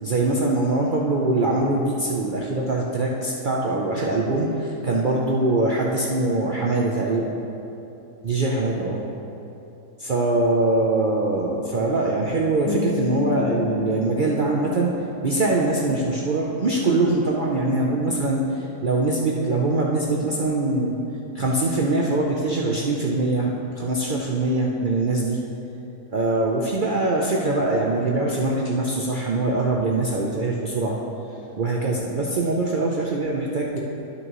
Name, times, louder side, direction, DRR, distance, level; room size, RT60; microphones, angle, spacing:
voice 1, 0.0-7.3 8.2-9.0 10.0-14.9 15.2-21.0 21.3-25.4 26.1-31.0 31.6-33.8, right 2 dB, 65° right, -3 dB, 0.5 m, -23 dB
sound 1, 12.7-18.3, left 8 dB, 75° left, 1.4 m, -35 dB
12.5 x 6.3 x 3.0 m, 2.9 s
omnidirectional pair, 1.7 m